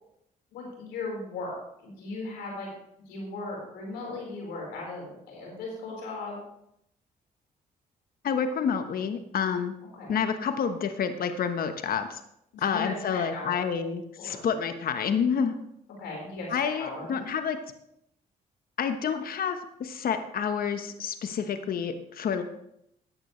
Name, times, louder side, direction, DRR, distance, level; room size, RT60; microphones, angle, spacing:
voice 1, 0.5-2.7 3.1-6.4 9.9-10.1 12.5-13.5 14.2-14.4 16.0-17.1, left 3 dB, 90° left, -2 dB, 4.5 m, -37 dB
voice 2, 8.2-9.7 10.1-12.2 12.6-15.6 16.5-17.6 18.8-22.4, left 7 dB, 60° left, 8 dB, 1.2 m, -29 dB
14.0 x 8.7 x 3.2 m, 0.77 s
supercardioid pair, 65°, 17 cm